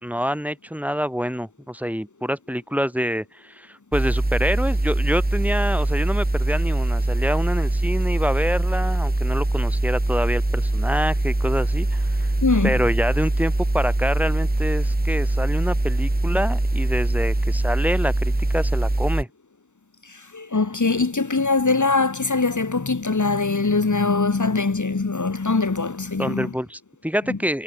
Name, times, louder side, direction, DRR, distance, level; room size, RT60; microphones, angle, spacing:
voice 1, 0.0-12.3 12.6-19.3 26.2-27.6, equal, 5° right, 5.4 m, -26 dB
sound 1, 3.9-19.2, right 2 dB, 30° right, 3.1 m, -22 dB
voice 2, 12.4-12.8 20.0-26.5 27.3-27.4, left 3 dB, 60° left, 2.3 m, -22 dB
wide cardioid pair, 60°, 33 cm